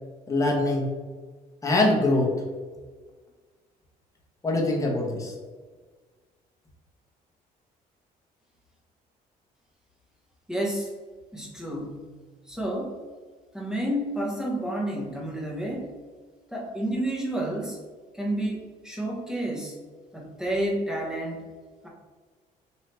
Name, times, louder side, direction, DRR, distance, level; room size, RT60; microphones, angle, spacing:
voice 1, 0.3-0.9 1.6-2.3 4.4-5.3, left 2 dB, 20° left, -1 dB, 0.9 m, -23 dB
voice 2, 10.5-10.9 11.3-12.1 12.5-13.0 13.5-15.9 16.5-17.8 18.1-19.8 20.1-21.5 21.8-21.9, right 1 dB, 5° right, -3 dB, 1.0 m, -30 dB
3.2 x 2.7 x 4.3 m, 1.4 s
cardioid pair, 110°, 17 cm